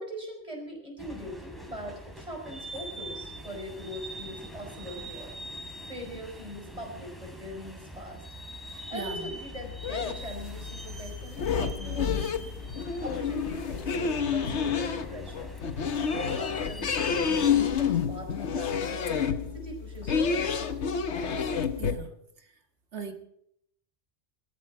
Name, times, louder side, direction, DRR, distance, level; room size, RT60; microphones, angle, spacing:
voice 1, 0.0-5.4 5.8-8.2 8.9-12.5 13.0-15.5 15.9-19.3 19.5-20.7, equal, 30° right, 1 dB, 5.1 m, -41 dB
sound 1, 1.0-17.5, right 1 dB, ahead, 3.0 m, -43 dB
voice 2, 8.9-9.3 21.8-22.1 22.4-22.5 22.9-23.1, right 4 dB, 80° right, 5 dB, 2.0 m, -39 dB
sound 2, 9.5-22.0, left 6 dB, 80° left, 1.3 m, -29 dB
20.0 x 14.0 x 4.8 m, 0.74 s
omnidirectional pair, 1.1 m